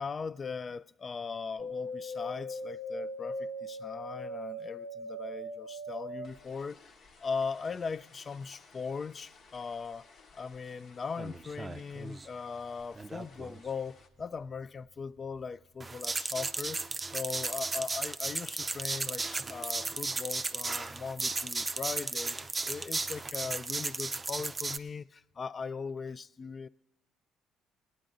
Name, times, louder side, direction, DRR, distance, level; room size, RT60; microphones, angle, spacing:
voice 1, 0.0-6.8 7.2-10.1 10.4-16.8 17.1-22.4 22.6-26.7, left 5 dB, 40° left, 0.4 m, -39 dB
sound 1, 1.6-11.0 11.2-12.1 12.5-13.4 13.8-13.9, equal, 65° left, 1.1 m, -41 dB
sound 2, 11.2-12.3 13.0-13.6 14.2-14.3 15.4-15.5 15.8-24.8, right 3 dB, 25° right, 0.5 m, -35 dB
17.5 x 9.5 x 3.8 m
supercardioid pair, 70°, 0 cm